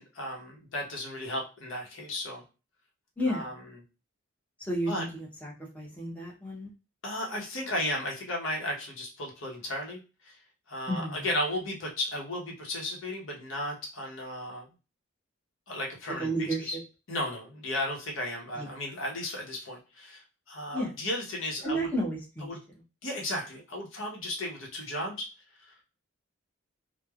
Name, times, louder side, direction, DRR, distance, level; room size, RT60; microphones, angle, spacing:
voice 1, 0.0-2.4 3.3-3.5 4.9-5.1 7.0-10.4 10.7-14.7 15.7-16.8 17.1-21.9 22.4-22.6 23.0-25.3 25.7-25.8, left 1 dB, 75° left, -1 dB, 0.9 m, -34 dB
voice 2, 4.6-6.7 10.9-11.3 16.2-16.8 18.5-18.7 20.7-20.9 21.6-22.5, right 1 dB, 10° left, -3 dB, 0.7 m, -32 dB
3.1 x 2.1 x 2.3 m, 0.31 s
head